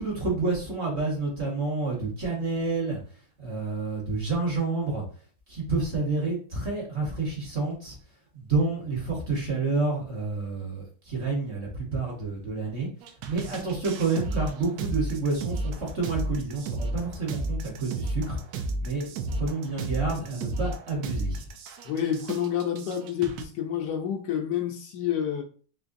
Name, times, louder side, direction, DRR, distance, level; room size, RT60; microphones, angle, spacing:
voice 1, 0.0-3.0 3.4-5.0 5.5-8.0 8.3-12.9 13.3-18.4 18.8-21.4, right 3 dB, 45° right, -1 dB, 1.1 m, -29 dB
sound 1, 13.0-23.4, right 2 dB, 70° right, 1.0 m, -33 dB
voice 2, 21.8-25.4, left 9 dB, 75° left, 4 dB, 1.1 m, -28 dB
3.8 x 3.2 x 2.5 m, 0.42 s
omnidirectional pair, 2.0 m